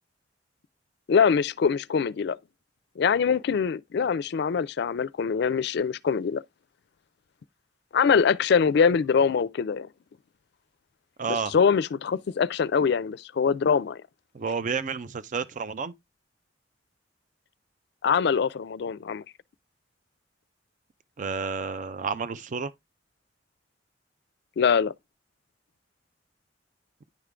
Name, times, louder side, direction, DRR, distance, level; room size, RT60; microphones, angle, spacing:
voice 1, 1.1-2.4 3.0-6.4 7.9-9.9 11.3-14.0 18.0-19.2 24.6-24.9, left 6 dB, 65° left, 0.4 m, -23 dB
voice 2, 11.2-11.5 14.3-15.9 21.2-22.7, right 5 dB, 45° right, 0.5 m, -30 dB
10.0 x 3.7 x 3.3 m
head